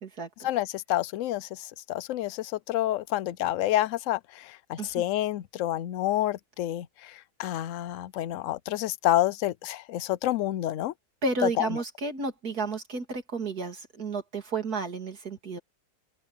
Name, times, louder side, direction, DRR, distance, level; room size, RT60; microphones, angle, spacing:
voice 1, 0.4-7.1 7.4-10.9 11.4-11.7, left 14 dB, 65° left, 0.9 m, -28 dB
voice 2, 11.2-15.6, right 3 dB, 70° right, 3.5 m, -32 dB
open air
omnidirectional pair, 1.7 m